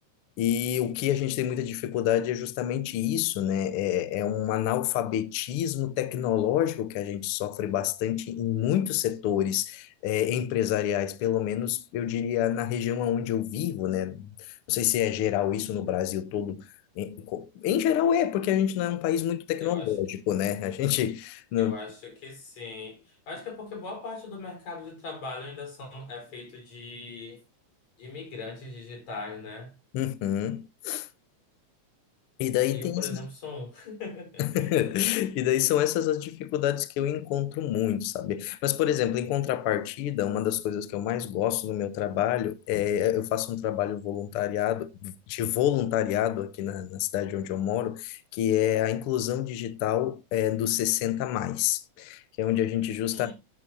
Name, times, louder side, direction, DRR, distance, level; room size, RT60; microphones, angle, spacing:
voice 1, 0.4-16.7 17.0-21.7 29.9-31.1 32.4-33.2 34.4-53.3, left 11 dB, 80° left, 1.2 m, -27 dB
voice 2, 19.6-19.9 21.6-27.4 28.0-29.7 32.7-34.7 53.1-53.3, left 3 dB, 65° left, 6.2 m, -40 dB
14.0 x 7.7 x 2.6 m
omnidirectional pair, 3.5 m